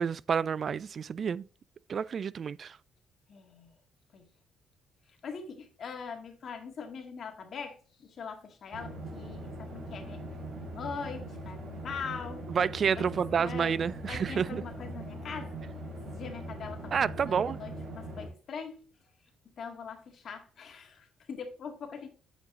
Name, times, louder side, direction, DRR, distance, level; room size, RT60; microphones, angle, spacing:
voice 1, 0.0-1.5 1.9-2.8 12.5-14.6 16.9-17.6, right 7 dB, 50° right, 0.3 m, -29 dB
voice 2, 3.3-3.7 4.1-4.3 5.2-10.2 10.6-12.4 13.0-13.1 13.4-15.5 16.1-18.9 19.6-22.1, left 6 dB, 55° left, 1.9 m, -42 dB
sound 1, 8.7-18.3, right 1 dB, 65° right, 3.7 m, -41 dB
8.7 x 5.2 x 3.8 m
cardioid pair, 90°, 0 cm